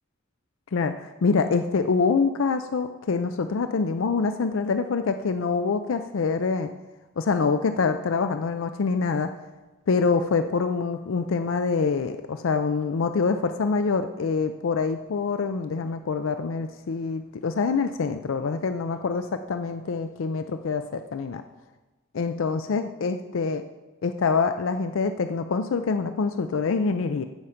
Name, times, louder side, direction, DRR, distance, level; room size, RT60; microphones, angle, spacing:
voice 1, 0.7-6.7 7.2-9.3 9.9-21.4 22.1-23.6 24.0-27.2, left 4 dB, 75° left, 9 dB, 0.4 m, -25 dB
15.0 x 5.7 x 5.0 m, 1.2 s
head